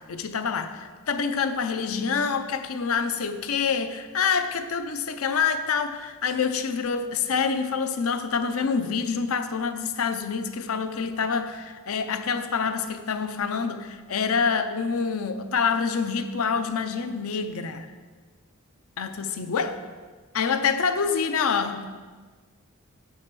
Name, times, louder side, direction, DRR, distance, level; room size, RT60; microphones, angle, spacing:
voice 1, 0.1-17.9 19.0-19.9 20.3-21.9, left 5 dB, 65° left, 8 dB, 0.6 m, -26 dB
7.4 x 4.8 x 6.0 m, 1.4 s
head